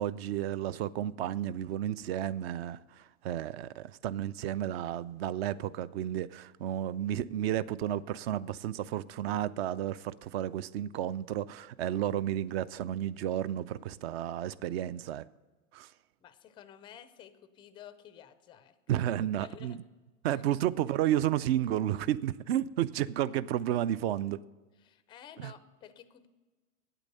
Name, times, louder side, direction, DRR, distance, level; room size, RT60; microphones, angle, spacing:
voice 1, 0.0-15.2 15.7-15.9 18.9-19.8 20.2-24.4 25.4-25.5, right 11 dB, 50° right, 0.5 m, -32 dB
voice 2, 16.2-19.0 19.4-19.8 20.3-20.4 24.8-26.3, left 9 dB, 15° left, 0.3 m, -52 dB
8.9 x 8.3 x 6.6 m
hypercardioid pair, 120°, 41 cm